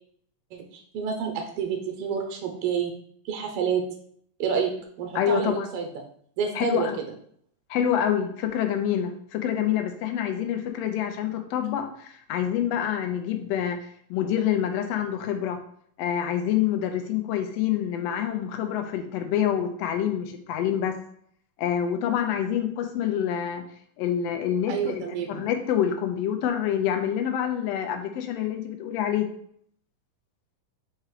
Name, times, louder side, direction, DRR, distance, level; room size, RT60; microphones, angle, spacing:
voice 1, 0.5-2.9 3.2-3.8 4.4-4.7 5.0-5.9 6.4-6.9 24.7-25.5, right 7 dB, 70° right, 2 dB, 1.4 m, -28 dB
voice 2, 5.1-5.7 6.5-7.0 7.7-13.8 14.1-15.6 16.0-21.0 21.6-23.6 24.0-29.3, left 9 dB, 80° left, 6 dB, 1.4 m, -27 dB
4.9 x 4.3 x 4.8 m, 0.63 s
omnidirectional pair, 3.7 m